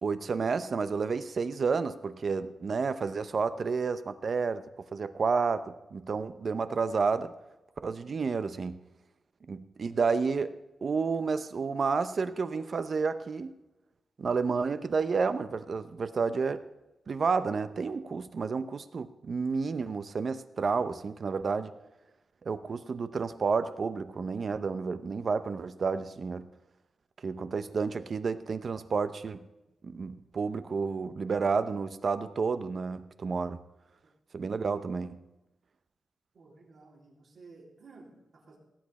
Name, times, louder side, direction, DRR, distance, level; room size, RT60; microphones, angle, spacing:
voice 1, 0.0-4.6 4.9-7.3 7.8-8.8 9.5-13.5 14.2-16.6 17.1-21.7 22.4-26.5 27.2-29.4 29.8-33.6 34.3-35.2, right 5 dB, 50° right, 12 dB, 0.7 m, -30 dB
voice 2, 36.3-38.6, right 3 dB, 65° right, -2 dB, 3.6 m, -54 dB
17.5 x 8.5 x 4.2 m, 0.99 s
wide cardioid pair, 125°, 0 cm